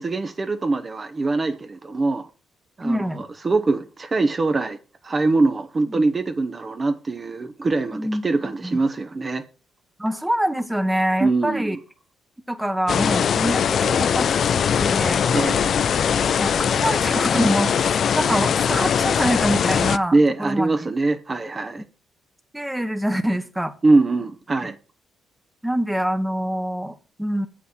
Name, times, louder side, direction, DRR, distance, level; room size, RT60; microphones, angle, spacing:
voice 1, 0.0-2.3 2.8-4.8 5.0-9.4 11.2-11.8 15.3-15.7 20.1-21.8 23.8-24.8, right 3 dB, 30° right, 0.9 m, -22 dB
voice 2, 2.8-3.2 5.9-6.0 7.9-8.8 10.0-11.8 12.5-14.3 14.5-15.2 16.4-20.9 22.5-23.7 25.6-27.5, equal, 5° right, 1.1 m, -25 dB
sound 1, 12.9-20.0, left 7 dB, 55° left, 0.4 m, -21 dB
7.9 x 6.0 x 6.2 m
cardioid pair, 90°, 0 cm